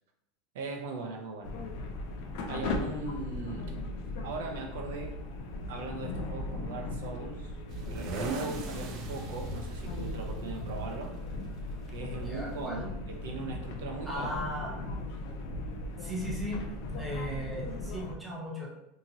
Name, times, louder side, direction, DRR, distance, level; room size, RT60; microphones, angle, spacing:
voice 1, 0.5-1.5 2.5-3.7 4.2-5.1 5.7-7.5 7.9-11.1 11.9-14.3, right 3 dB, 90° right, 2 dB, 0.5 m, -39 dB
sound 1, 1.4-18.1, left 2 dB, 55° left, 0.4 m, -38 dB
sound 2, 7.7-12.7, right 3 dB, 35° right, 0.4 m, -40 dB
voice 2, 12.2-12.9 14.0-14.7 16.0-16.6 16.9-18.7, equal, 5° right, -5 dB, 0.7 m, -37 dB
2.8 x 2.7 x 2.7 m, 0.84 s
supercardioid pair, 170°, 0 cm